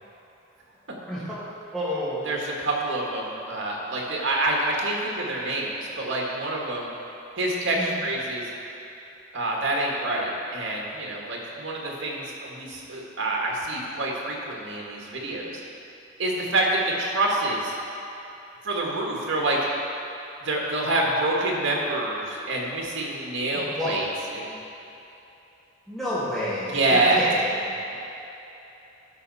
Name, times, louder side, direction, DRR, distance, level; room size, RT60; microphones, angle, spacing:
voice 1, 1.7-2.2 7.8-8.1 23.5-23.9 25.9-27.6, left 1 dB, ahead, -11 dB, 2.0 m, -29 dB
voice 2, 2.2-6.9 7.4-8.4 9.3-15.5 16.2-17.7 18.6-19.6 20.4-24.1 24.3-24.5 26.7-27.2, right 2 dB, 75° right, -2 dB, 1.7 m, -27 dB
13.0 x 5.5 x 4.2 m, 3.0 s
head